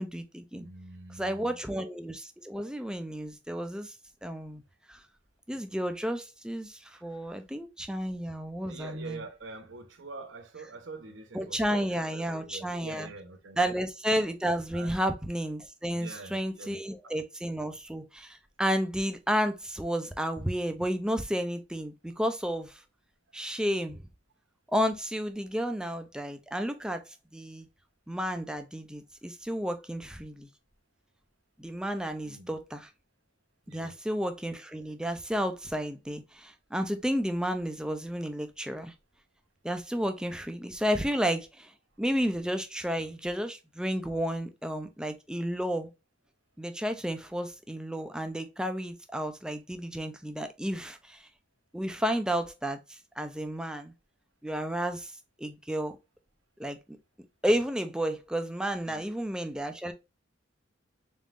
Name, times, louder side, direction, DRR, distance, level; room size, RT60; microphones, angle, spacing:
voice 1, 0.0-0.7 1.1-3.9 4.2-4.6 4.9-5.0 5.5-9.2 11.3-13.1 13.6-22.8 23.3-24.0 24.7-27.7 28.1-30.5 31.6-32.9 33.7-38.9 39.6-41.7 42.0-45.9 46.6-51.3 51.7-53.9 54.4-56.0 56.6-57.0 57.4-59.9, equal, 5° right, 0.4 m, -32 dB
voice 2, 0.5-1.6 6.9-7.0 8.7-13.6 14.7-15.0 15.9-16.8 32.2-32.5 33.7-33.9 58.9-59.0, right 3 dB, 80° right, 0.8 m, -45 dB
3.8 x 3.6 x 2.5 m
head